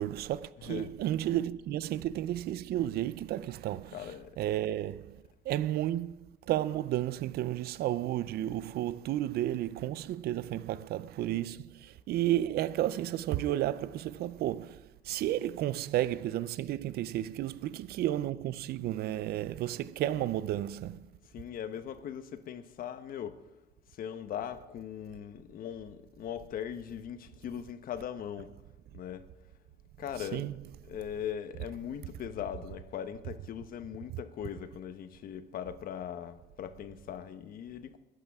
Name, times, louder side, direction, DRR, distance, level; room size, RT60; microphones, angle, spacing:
voice 1, 0.0-4.1 4.4-21.1 30.2-30.6, right 13 dB, 70° right, 0.5 m, -32 dB
voice 2, 3.9-4.4 21.3-23.4 24.0-28.5 28.9-29.3 30.0-30.5 30.8-38.0, left 9 dB, 60° left, 1.1 m, -40 dB
21.0 x 11.5 x 3.6 m
cardioid pair, 110°, 17 cm